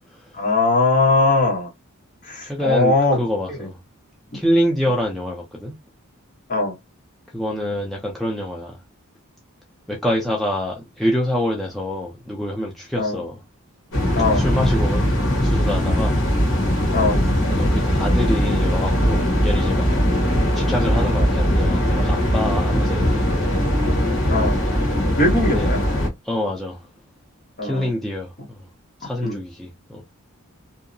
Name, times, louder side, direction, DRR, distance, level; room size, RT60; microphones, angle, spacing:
voice 1, 0.3-1.7 2.2-3.2 3.5-3.7 6.5-6.8 13.0-13.2 14.2-14.4 16.9-17.2 24.3-24.5 25.2-25.8 27.6-27.9 29.2-29.4, left 2 dB, 35° left, 0.9 m, -20 dB
voice 2, 2.4-3.8 4.3-5.8 7.3-8.8 9.9-13.4 14.3-15.0 15.4-16.2 17.5-19.9 20.5-23.5 25.3-25.7 26.2-26.9 27.6-28.6 29.0-30.0, left 1 dB, ahead, 0.4 m, -26 dB
sound 1, 13.9-26.1, equal, 60° left, 1.2 m, -20 dB
2.7 x 2.0 x 2.5 m
head